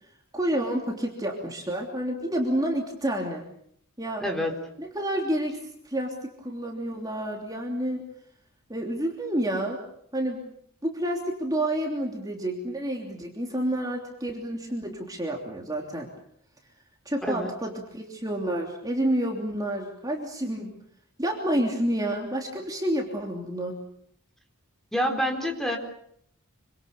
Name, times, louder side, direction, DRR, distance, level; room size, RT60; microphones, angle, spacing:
voice 1, 0.3-3.4 4.0-4.2 4.8-8.0 8.7-9.8 10.1-10.4 10.8-16.1 17.0-20.7 21.2-23.8, right 1 dB, 15° right, 1 dB, 3.2 m, -29 dB
voice 2, 4.2-4.5 17.2-17.5 24.9-25.8, equal, ahead, 3 dB, 4.0 m, -27 dB
27.0 x 25.0 x 7.0 m, 0.68 s
head